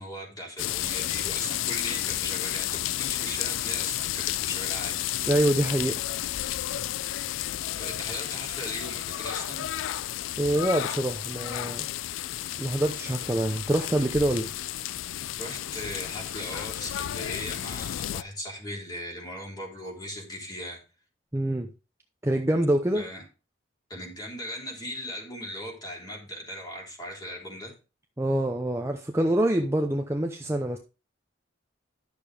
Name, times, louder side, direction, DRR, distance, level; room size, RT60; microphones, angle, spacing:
voice 1, 0.0-5.3 7.7-9.7 15.4-20.8 22.9-23.2 23.9-27.7, equal, 20° left, 3.3 m, -38 dB
sound 1, 0.6-18.2, left 13 dB, 85° left, 0.3 m, -32 dB
voice 2, 5.3-6.0 10.4-11.9 12.6-14.5 21.3-21.7 22.2-23.1 28.2-30.8, right 1 dB, 15° right, 0.7 m, -25 dB
11.0 x 6.8 x 3.4 m
head